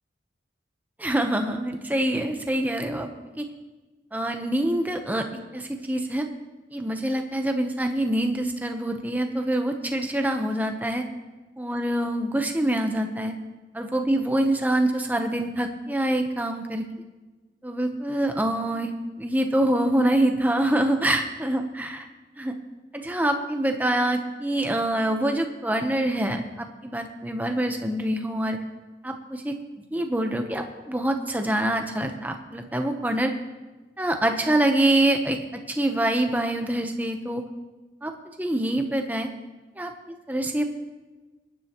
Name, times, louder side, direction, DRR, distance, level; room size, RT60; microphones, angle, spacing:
voice 1, 1.0-3.1 3.4-3.5 4.1-5.3 5.5-6.3 6.7-11.0 11.6-13.3 13.7-16.8 17.6-18.9 19.2-22.1 22.4-22.5 22.9-28.6 29.0-29.6 29.9-33.3 34.0-37.4 38.0-38.1 38.4-39.3 39.8-39.9 40.3-40.6, right 1 dB, 10° right, 5 dB, 0.9 m, -25 dB
25.5 x 10.0 x 3.0 m, 1.2 s
head